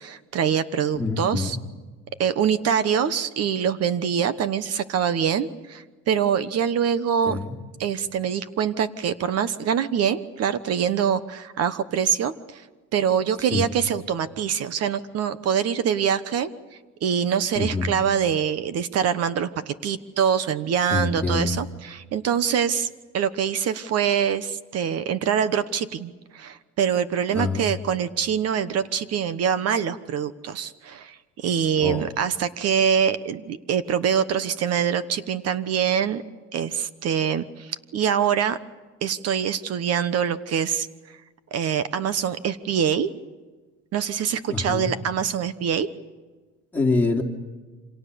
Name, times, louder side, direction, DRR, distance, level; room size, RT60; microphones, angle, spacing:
voice 1, 0.0-1.6 2.2-7.4 7.8-12.6 12.9-16.5 17.0-36.2 36.5-38.6 39.0-41.2 41.5-43.1 43.9-45.9, right 8 dB, 55° right, 13 dB, 1.2 m, -24 dB
voice 2, 1.0-1.6 7.2-7.5 13.5-13.7 17.5-17.9 20.9-21.5 27.3-27.7 31.8-32.1 44.4-44.9 46.7-47.2, left 3 dB, 5° left, 0 dB, 3.1 m, -25 dB
28.5 x 26.5 x 7.0 m, 1.3 s
cardioid pair, 155°, 30 cm